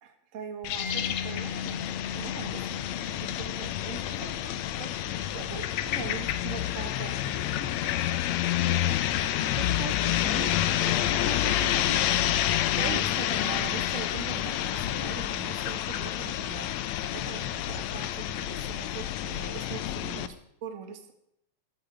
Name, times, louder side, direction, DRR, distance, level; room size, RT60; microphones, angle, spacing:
voice 1, 0.0-7.7 12.7-20.3 20.6-21.1, right 6 dB, 35° right, 6 dB, 1.4 m, -42 dB
sound 1, 0.6-20.3, left 12 dB, 75° left, 1.9 m, -29 dB
Mallet percussion, 0.8-8.3, left 5 dB, 55° left, 5.7 m, -41 dB
voice 2, 9.4-12.3 12.7-13.1 20.2-20.3, right 11 dB, 75° right, 10 dB, 1.9 m, -40 dB
14.0 x 14.0 x 3.5 m, 0.77 s
omnidirectional pair, 3.5 m